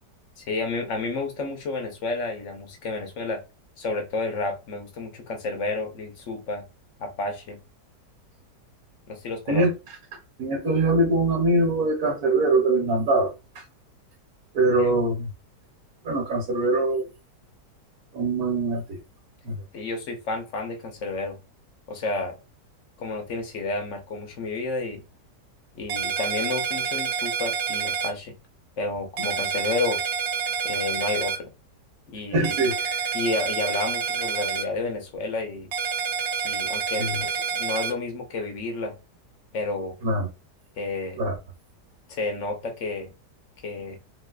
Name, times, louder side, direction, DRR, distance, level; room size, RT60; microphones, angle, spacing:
voice 1, 0.4-3.4 3.8-6.6 7.0-7.6 9.1-9.6 14.8-14.9 19.7-21.4 21.9-22.4 23.0-25.0 25.7-28.3 28.8-30.0 30.6-31.5 32.1-32.7 33.1-35.7 36.4-39.0 39.5-40.0 40.8-41.2 42.1-43.1 43.6-44.0, left 3 dB, 60° left, 0.9 m, -31 dB
voice 2, 10.4-13.3 13.5-13.6 14.5-15.3 16.0-17.0 18.1-19.0 19.4-19.6 32.3-33.0 37.0-37.2 40.0-40.3 41.2-41.4, right 2 dB, 60° right, 1.4 m, -23 dB
sound 1, 25.9-28.1 29.2-31.4 32.4-34.6 35.7-37.9, right 6 dB, 80° right, 1.4 m, -28 dB
3.2 x 3.1 x 2.3 m
omnidirectional pair, 1.9 m